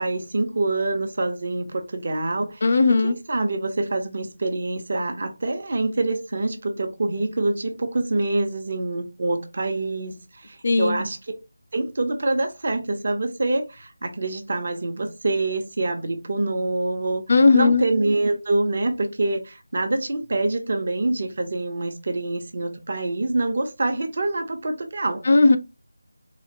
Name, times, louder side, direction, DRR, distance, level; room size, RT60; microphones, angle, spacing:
voice 1, 0.0-11.3 11.7-17.2 17.5-25.2, right 2 dB, 50° right, 0.8 m, -26 dB
voice 2, 2.6-3.1 10.6-11.0 17.3-17.8 25.3-25.6, left 3 dB, 50° left, 0.4 m, -16 dB
4.1 x 2.4 x 2.8 m
figure-of-eight pair, 165°, 0 cm